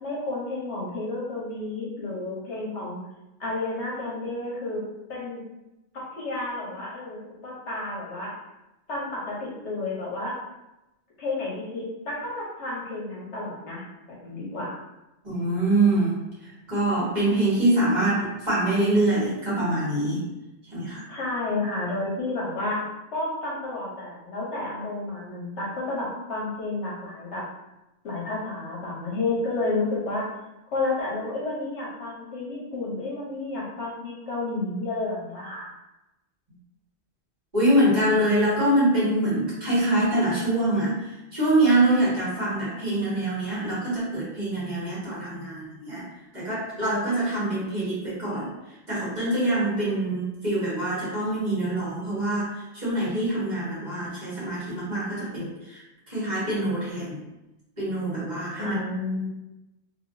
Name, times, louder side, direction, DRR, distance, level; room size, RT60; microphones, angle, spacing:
voice 1, 0.0-3.0 3.4-4.8 5.1-5.4 5.9-8.3 8.9-10.4 11.2-13.8 14.2-14.8 21.1-22.8 23.1-27.4 28.0-30.2 30.7-35.7 58.6-59.3, left 2 dB, 70° left, -4 dB, 1.2 m, -31 dB
voice 2, 15.2-20.2 20.7-21.1 37.5-46.1 46.3-48.5 48.9-57.2 57.8-58.8, right 1 dB, 35° right, -9 dB, 1.6 m, -25 dB
3.4 x 3.0 x 2.6 m, 0.96 s
omnidirectional pair, 1.2 m